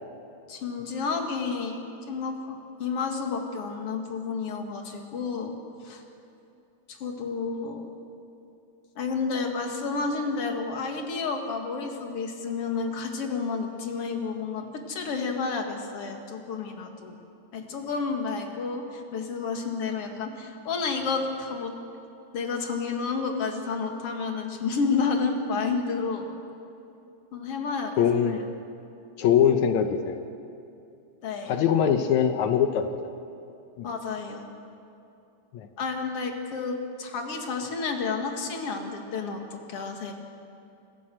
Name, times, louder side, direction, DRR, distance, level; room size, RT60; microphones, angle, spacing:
voice 1, 0.5-5.5 5.8-6.0 6.9-7.8 9.0-17.2 17.5-21.8 22.3-26.3 27.3-27.9 28.3-28.4 31.2-31.6 33.8-34.5 35.8-40.1, left 4 dB, 55° left, 4 dB, 2.7 m, -30 dB
voice 2, 28.0-28.4 29.2-30.2 31.5-32.9 33.8-33.9 35.5-35.7, left 8 dB, 80° left, 7 dB, 2.2 m, -22 dB
26.5 x 14.5 x 7.7 m, 2.7 s
omnidirectional pair, 3.4 m